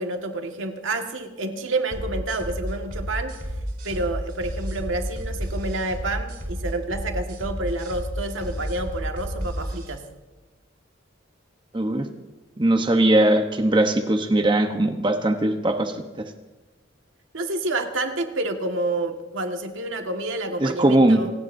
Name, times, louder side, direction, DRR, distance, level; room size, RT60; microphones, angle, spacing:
voice 1, 0.0-3.3 3.8-10.0 17.3-21.3, right 2 dB, 85° right, 4 dB, 1.7 m, -29 dB
sound 1, 1.9-9.9, equal, 50° right, 4.0 m, -31 dB
voice 2, 11.7-12.1 12.6-15.9 20.6-21.2, right 1 dB, 25° right, 6 dB, 1.0 m, -20 dB
27.0 x 19.0 x 2.7 m, 1.1 s
head